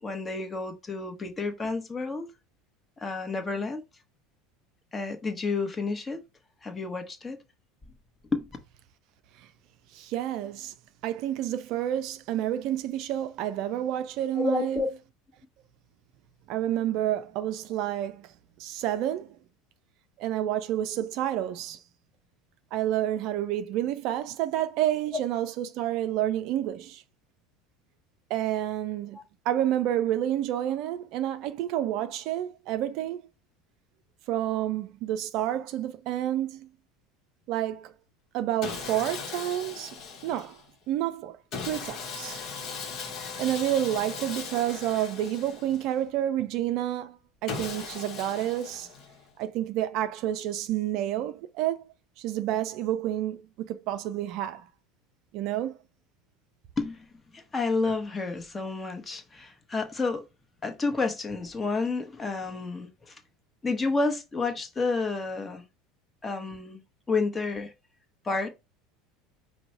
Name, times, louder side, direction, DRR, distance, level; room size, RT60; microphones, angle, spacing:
voice 1, 0.0-2.3 3.0-3.8 4.9-6.2 6.6-7.4 8.3-8.5 14.4-14.9 29.1-29.2 56.8-57.1 57.3-60.3 60.6-63.2 63.6-65.6 66.2-66.8 67.1-67.7 68.2-68.5, left 3 dB, 20° left, 1.1 m, -30 dB
voice 2, 9.9-10.7 11.0-14.8 16.5-18.3 18.6-19.4 20.2-21.8 22.7-27.0 28.3-29.2 29.5-33.2 34.3-36.7 37.5-37.9 38.3-40.0 40.2-40.6 40.9-41.4 41.6-42.4 43.4-48.9 49.4-51.8 52.2-54.7 55.3-55.8, right 12 dB, 50° right, 0.4 m, -29 dB
Sawing, 38.6-40.7 41.5-46.0 47.5-49.3, left 5 dB, 40° left, 1.2 m, -38 dB
5.2 x 2.2 x 4.4 m
figure-of-eight pair, 70°, 0 cm